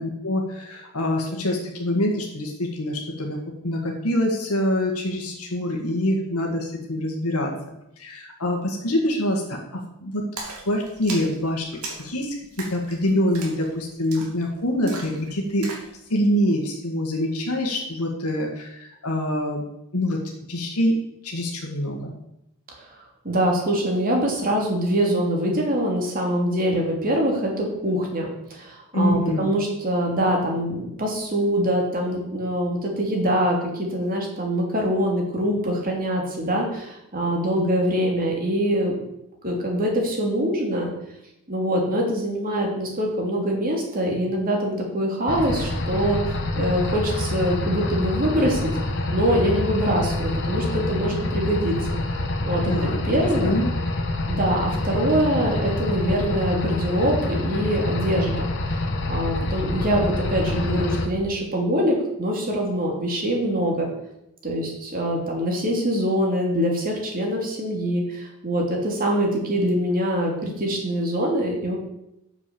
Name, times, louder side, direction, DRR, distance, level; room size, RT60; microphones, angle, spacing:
voice 1, 0.0-7.5 8.0-10.3 10.7-11.7 12.0-15.7 16.1-19.7 19.9-20.2 20.5-21.0 21.2-22.1 28.9-29.5 52.6-53.7, left 1 dB, 80° left, 0 dB, 1.8 m, -25 dB
Splash splatter, 10.4-15.9, right 3 dB, 80° right, 2.9 m, -38 dB
voice 2, 23.2-38.9 39.4-40.9 41.5-48.7 49.1-51.7 52.4-53.6 54.3-58.8 59.1-63.9 64.4-71.8, equal, 40° right, -1 dB, 3.0 m, -24 dB
sound 1, 45.3-61.1, left 2 dB, 55° left, 1.4 m, -26 dB
8.6 x 7.1 x 7.0 m, 0.84 s
head